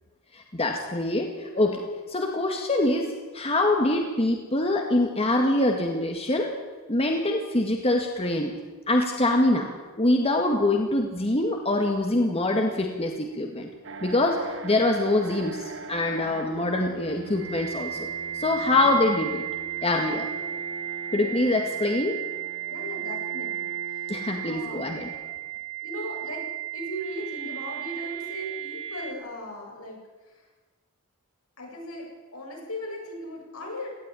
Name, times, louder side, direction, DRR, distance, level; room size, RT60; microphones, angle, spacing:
voice 1, 0.3-1.8 2.1-6.5 6.9-8.5 8.9-9.7 10.0-13.7 14.0-18.1 18.3-19.4 19.8-20.3 21.1-22.2 24.1-25.1, left 2 dB, 30° left, 2 dB, 1.9 m, -24 dB
sound 1, 13.8-29.1, right 9 dB, 60° right, 1.8 m, -35 dB
voice 2, 22.7-24.1 24.4-25.0 25.8-26.4 26.7-30.0 30.3-30.5 31.6-33.9, left 1 dB, 75° left, -1 dB, 7.4 m, -38 dB
18.0 x 15.5 x 9.9 m, 1.3 s
head